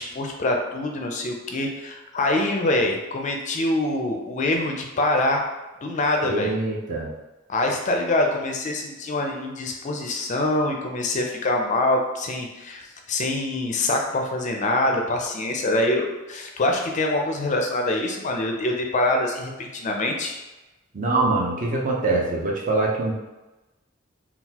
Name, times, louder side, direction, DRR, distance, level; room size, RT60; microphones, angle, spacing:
voice 1, 0.0-5.4 5.8-6.5 7.5-12.8 13.1-20.4, left 2 dB, 35° left, 1 dB, 0.4 m, -24 dB
voice 2, 6.2-7.1 20.9-23.2, right 2 dB, 40° right, -2 dB, 0.6 m, -24 dB
3.8 x 2.3 x 2.8 m, 1.1 s
head